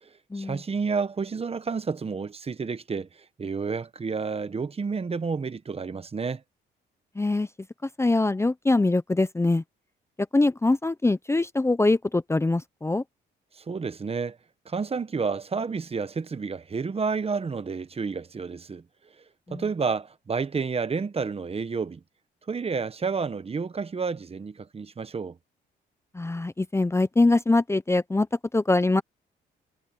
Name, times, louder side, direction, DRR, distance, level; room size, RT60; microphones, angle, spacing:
voice 1, 0.3-3.1 3.4-6.4 13.6-14.4 14.6-18.8 19.5-22.0 22.5-25.4, right 5 dB, 30° right, 1.1 m, -30 dB
voice 2, 7.2-7.5 8.0-9.6 10.3-13.0 19.5-19.6 26.1-28.3 28.5-29.0, left 2 dB, 15° left, 0.7 m, -23 dB
cardioid pair, 90°, 20 cm